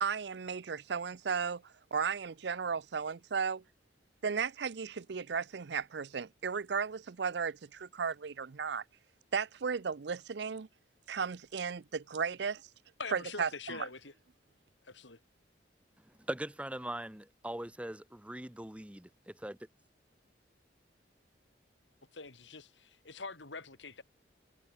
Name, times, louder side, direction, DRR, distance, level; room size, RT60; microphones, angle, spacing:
voice 1, 0.0-1.6 1.9-3.6 4.2-8.8 9.3-10.7 11.1-12.6 13.1-13.9, right 6 dB, 65° right, 0.5 m, -35 dB
voice 2, 13.0-14.1 14.8-15.2 22.1-24.0, left 4 dB, 85° left, 3.2 m, -44 dB
voice 3, 16.0-19.6, right 1 dB, 5° right, 0.9 m, -41 dB
head